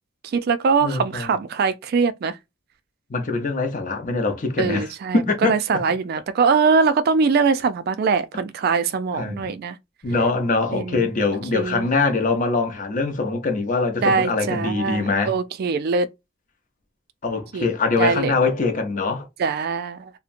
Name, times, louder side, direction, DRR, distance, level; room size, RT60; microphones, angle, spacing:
voice 1, 0.2-2.4 4.6-9.8 10.7-11.1 11.5-11.9 14.0-16.1 17.5-17.7 18.0-18.3 19.4-20.1, right 5 dB, 50° right, 0.3 m, -22 dB
voice 2, 0.8-1.3 3.1-4.9 5.1-5.5 9.1-9.5 10.0-15.3 17.2-19.3, left 3 dB, 40° left, 0.6 m, -23 dB
2.8 x 2.1 x 2.5 m
head